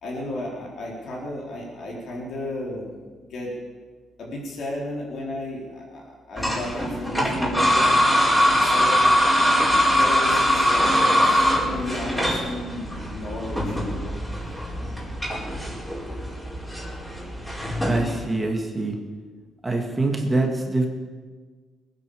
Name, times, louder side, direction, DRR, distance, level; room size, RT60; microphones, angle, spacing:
voice 1, 0.0-2.9 3.2-3.5 4.2-7.9 8.5-9.0 9.9-14.1, left 1 dB, 65° left, -3 dB, 4.3 m, -33 dB
sound 1, 6.4-18.2, equal, 5° left, 4.9 m, -22 dB
voice 2, 17.8-18.9 19.6-20.9, right 2 dB, 20° right, 2 dB, 2.5 m, -24 dB
20.5 x 9.9 x 7.1 m, 1.4 s
cardioid pair, 100°, 0 cm